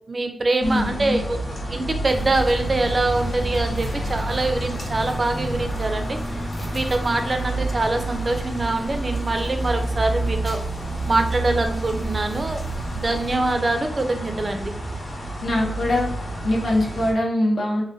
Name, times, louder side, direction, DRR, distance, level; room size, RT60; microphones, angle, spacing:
voice 1, 0.1-6.2 6.7-10.6 11.1-12.6 12.9-14.7, right 2 dB, 35° right, 6 dB, 0.4 m, -24 dB
voice 2, 0.6-1.2 15.4-16.2 16.4-17.8, left 1 dB, 70° left, -2 dB, 0.9 m, -22 dB
sound 1, 0.6-17.1, right 2 dB, 50° left, 1.0 m, -29 dB
sound 2, 2.1-13.3, equal, 30° left, 0.5 m, -38 dB
3.1 x 2.5 x 2.6 m, 0.76 s
wide cardioid pair, 145°, 0 cm